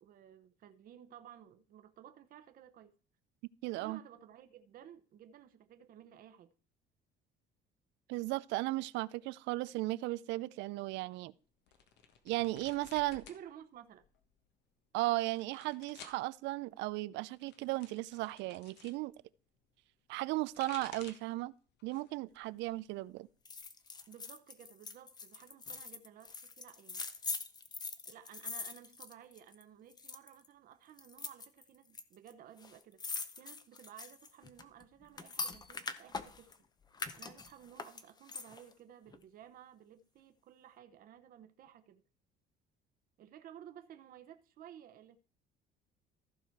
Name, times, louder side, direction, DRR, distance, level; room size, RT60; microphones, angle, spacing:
voice 1, 0.0-2.9 3.8-6.5 13.1-14.0 24.1-27.0 28.0-36.6 37.1-42.0 43.2-45.2, right 10 dB, 50° right, 0.9 m, -55 dB
voice 2, 3.6-4.0 8.1-11.3 12.3-13.2 14.9-19.1 20.1-21.5 21.8-23.3, right 19 dB, 80° right, 0.5 m, -36 dB
sound 1, 11.7-13.4 13.7-14.4 15.1-16.2 17.2-19.0 20.2-21.4 21.8-22.3 22.6-23.6, left 7 dB, 65° left, 1.3 m, -55 dB
sound 2, 23.5-29.6 29.9-30.5 31.0-32.0 32.3-32.4 32.6-36.6 36.9-38.7 39.1-39.2, left 4 dB, 20° left, 0.7 m, -43 dB
14.5 x 5.0 x 4.6 m
cardioid pair, 135°, 19 cm